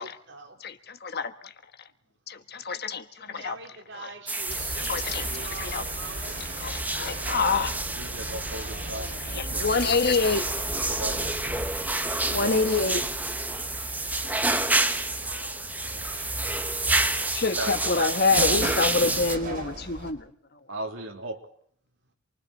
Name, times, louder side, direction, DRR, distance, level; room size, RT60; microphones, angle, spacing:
voice 1, 0.0-0.6 3.1-6.6 7.0-7.3 8.5-11.4 15.2-15.6, right 3 dB, 60° right, 4.6 m, -45 dB
voice 2, 0.6-1.5 2.3-3.5 4.8-5.3 5.6-5.8 6.6-7.8 9.3-10.4 12.3-13.1 17.2-20.3, left 4 dB, 50° left, 1.6 m, -26 dB
sound 1, 4.3-19.4, right 2 dB, 10° right, 1.1 m, -29 dB
sound 2, 4.5-20.1, right 1 dB, 45° right, 5.0 m, -38 dB
voice 3, 7.9-9.1 9.5-9.8 10.9-11.5 12.4-12.9 15.9-16.0 16.6-19.0 20.7-21.4, right 2 dB, 80° right, 3.3 m, -37 dB
28.0 x 24.0 x 4.3 m
head